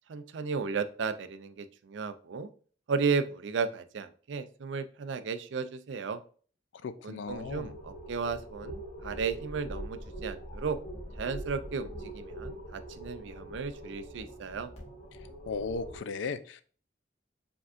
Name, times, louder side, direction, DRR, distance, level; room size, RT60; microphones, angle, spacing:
voice 1, 0.1-2.5 2.9-6.2 7.0-10.8 11.2-14.7, right 5 dB, 75° right, 11 dB, 0.4 m, -34 dB
voice 2, 6.8-7.8 15.5-16.6, left 4 dB, 80° left, 12 dB, 0.4 m, -36 dB
sound 1, 7.3-16.0, right 1 dB, 35° left, 1.3 m, -43 dB
5.1 x 3.5 x 2.4 m, 0.42 s
head